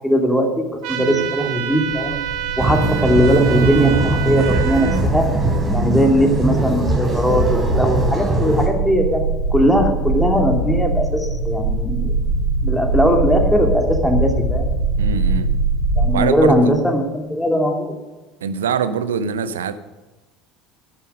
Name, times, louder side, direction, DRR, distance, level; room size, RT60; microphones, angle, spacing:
voice 1, 0.0-2.2 2.6-5.2 5.7-9.2 9.5-12.2 12.6-14.7 16.0-17.9, equal, 5° left, 2 dB, 2.8 m, -19 dB
sound 1, 0.8-5.0, right 11 dB, 60° right, 1.8 m, -28 dB
voice 2, 1.0-1.3 15.0-15.5 16.1-16.7 18.4-19.7, right 7 dB, 75° right, 12 dB, 0.7 m, -23 dB
sound 2, 2.0-16.1, right 2 dB, 85° left, 2.5 m, -23 dB
sound 3, 2.6-8.7, right 2 dB, 20° right, 4.4 m, -20 dB
11.0 x 11.0 x 5.0 m, 1.2 s
figure-of-eight pair, 65°, 0 cm